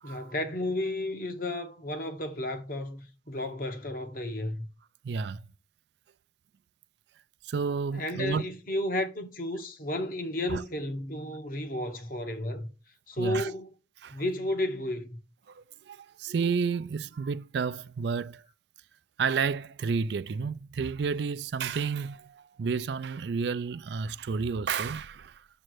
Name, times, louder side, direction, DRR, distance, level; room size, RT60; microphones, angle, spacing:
voice 1, 0.0-4.7 7.9-12.7 13.1-13.7 14.1-15.2, left 1 dB, 50° left, 1.1 m, -33 dB
voice 2, 5.0-5.5 7.4-8.4 10.5-10.6 13.2-13.5 14.0-14.2 15.5-18.4 19.2-25.5, right 5 dB, 65° right, 0.4 m, -31 dB
7.5 x 3.2 x 6.1 m
head